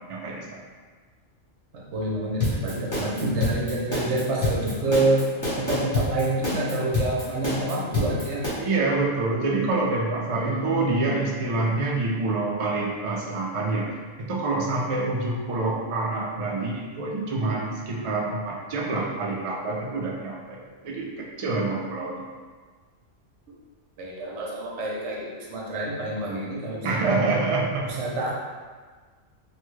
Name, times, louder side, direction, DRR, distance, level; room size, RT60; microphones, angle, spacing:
voice 1, 0.1-0.6 8.6-20.6 20.8-22.2 26.8-27.9, right 3 dB, 55° right, -3 dB, 0.3 m, -27 dB
voice 2, 1.9-5.2 5.6-8.5 10.3-11.0 24.0-27.3 27.8-28.3, right 2 dB, 70° right, -4 dB, 1.0 m, -27 dB
sound 1, 2.4-8.5, left 1 dB, 15° left, 0.8 m, -27 dB
3.2 x 2.3 x 3.1 m, 1.5 s
omnidirectional pair, 1.3 m